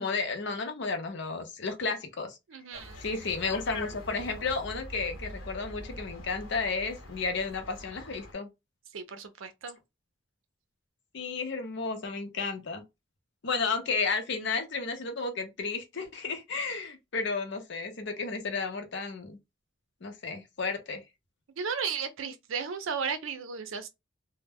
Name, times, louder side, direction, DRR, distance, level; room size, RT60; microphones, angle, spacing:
voice 1, 0.0-2.4 3.0-8.5 11.1-12.8 13.4-19.4 20.0-21.0, left 4 dB, 60° left, 0.6 m, -32 dB
voice 2, 2.5-3.0 8.9-9.8 21.6-23.9, right 6 dB, 75° right, 0.5 m, -34 dB
sound 1, 2.7-8.3, equal, 75° left, 1.0 m, -45 dB
2.1 x 2.1 x 3.4 m
head